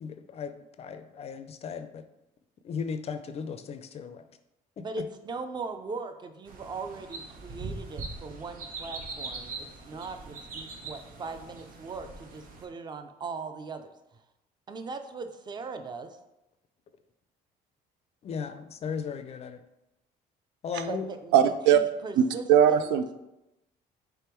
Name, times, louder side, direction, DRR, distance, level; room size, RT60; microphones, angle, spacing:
voice 1, 0.0-2.0 2.6-4.2 4.8-5.0 18.2-19.6 20.6-21.1, left 6 dB, 40° left, 10 dB, 0.4 m, -36 dB
voice 2, 4.8-13.9 14.7-16.2 20.9-22.9, right 4 dB, 25° right, 8 dB, 0.4 m, -39 dB
sound 1, 6.5-12.7, right 3 dB, 55° right, 0.8 m, -41 dB
voice 3, 21.3-21.8 22.2-23.2, right 9 dB, 85° right, 10 dB, 0.4 m, -21 dB
3.5 x 3.3 x 4.4 m, 0.92 s
cardioid pair, 110°, 17 cm